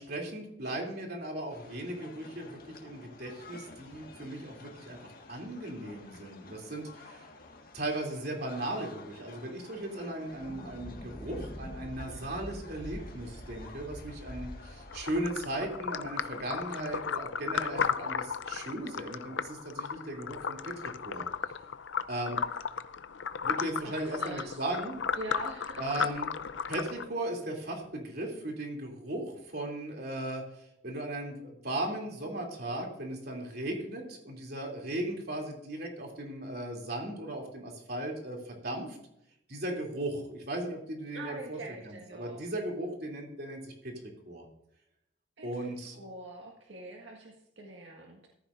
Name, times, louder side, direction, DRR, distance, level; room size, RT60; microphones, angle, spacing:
voice 1, 0.0-5.0 5.3-7.2 7.7-20.7 21.0-21.3 22.1-22.4 23.4-25.0 25.8-26.3 26.7-39.0 39.5-43.9 44.3-44.5 45.4-46.0, right 1 dB, 55° right, 1 dB, 3.0 m, -37 dB
sound 1, 1.5-15.0, left 3 dB, 50° left, 1.8 m, -52 dB
Thunder, 10.3-16.9, equal, 20° left, 1.3 m, -45 dB
sound 2, 14.9-27.0, left 6 dB, 75° left, 0.6 m, -35 dB
voice 2, 23.8-24.6 25.2-25.8 41.1-42.4 45.4-48.3, right 1 dB, 80° right, 0 dB, 1.8 m, -44 dB
14.5 x 14.0 x 2.6 m, 0.78 s
head